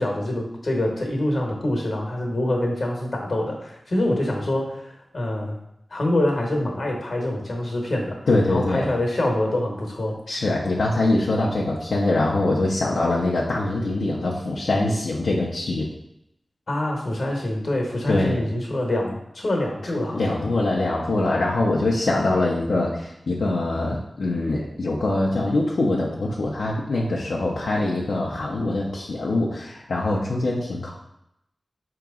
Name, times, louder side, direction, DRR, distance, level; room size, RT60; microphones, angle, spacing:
voice 1, 0.0-5.6 5.9-8.2 8.5-10.2 16.7-20.5, left 1 dB, 60° left, 0 dB, 1.0 m, -25 dB
voice 2, 8.3-8.9 10.3-15.9 18.1-18.4 20.1-30.9, left 2 dB, 85° left, -3 dB, 0.5 m, -23 dB
4.9 x 2.9 x 3.6 m, 0.80 s
wide cardioid pair, 90°, 0 cm